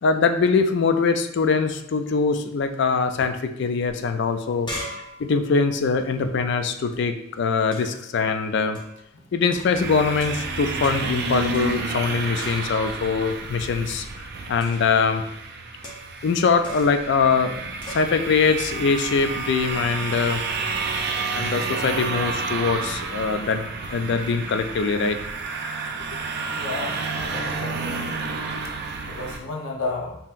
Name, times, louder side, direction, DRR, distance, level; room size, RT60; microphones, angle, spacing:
voice 1, 0.0-4.7 5.2-8.8 9.3-15.2 16.2-20.4 21.3-25.2, left 5 dB, 55° left, 8 dB, 0.4 m, -23 dB
sound 1, 4.3-7.0 7.7-8.1 8.7-9.0 9.5-10.6 10.8-11.2 11.5-12.1 12.4-13.0 14.6-15.0 15.8-16.3 16.6-17.1 17.8-18.1, equal, 20° left, 0.7 m, -40 dB
sound 2, 9.7-29.4, right 4 dB, 50° right, 0.4 m, -30 dB
voice 2, 26.5-28.1 29.1-30.2, left 3 dB, 85° left, -1 dB, 0.8 m, -32 dB
5.5 x 2.8 x 2.5 m, 0.81 s
head